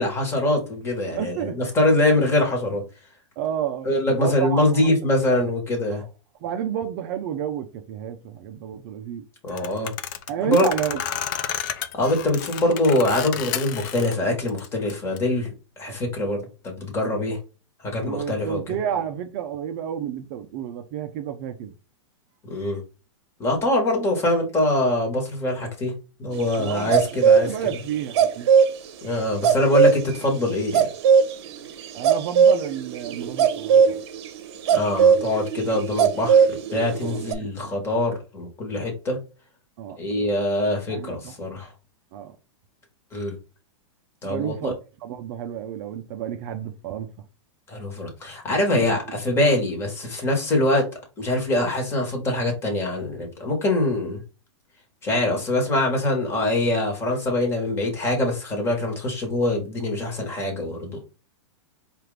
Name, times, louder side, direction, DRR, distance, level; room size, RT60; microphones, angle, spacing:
voice 1, 0.0-2.8 3.8-6.0 9.4-9.9 10.4-10.7 11.9-15.5 15.8-17.4 17.8-18.7 22.4-22.8 23.4-25.9 26.2-27.5 29.0-30.9 34.7-36.4 36.7-39.2 40.0-41.7 43.1-43.3 44.2-44.7 47.7-50.8 51.2-54.2 55.0-61.0, left 1 dB, 15° left, 1.3 m, -23 dB
voice 2, 1.1-1.6 3.4-4.8 5.4-5.5 5.9-6.1 6.4-9.2 10.3-11.0 15.9-16.0 18.0-21.7 26.6-27.0 27.3-28.5 31.9-34.0 37.0-37.7 39.8-40.0 40.9-41.3 42.1-42.4 44.3-47.1 48.7-49.0, right 9 dB, 35° right, 0.5 m, -30 dB
sound 1, 9.5-14.1 14.5-15.2, left 10 dB, 40° left, 0.4 m, -31 dB
sound 2, 26.5-28.7 29.0-29.1 29.4-37.3, right 7 dB, 55° right, 0.8 m, -19 dB
4.5 x 2.5 x 3.2 m
hypercardioid pair, 150°, 16 cm